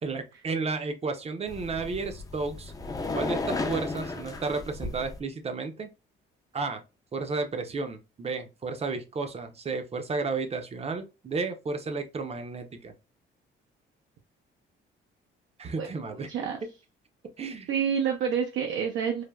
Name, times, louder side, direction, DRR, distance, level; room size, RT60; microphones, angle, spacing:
voice 1, 0.0-2.7 3.1-5.9 6.5-6.8 7.1-12.9 15.6-16.3 16.6-16.7 17.4-17.7, right 4 dB, 30° right, 0.5 m, -32 dB
sound 1, 1.5-5.2, left 3 dB, 20° left, 0.4 m, -34 dB
voice 2, 17.7-19.2, right 7 dB, 80° right, 0.5 m, -28 dB
3.2 x 2.1 x 2.2 m
cardioid pair, 90°, 20 cm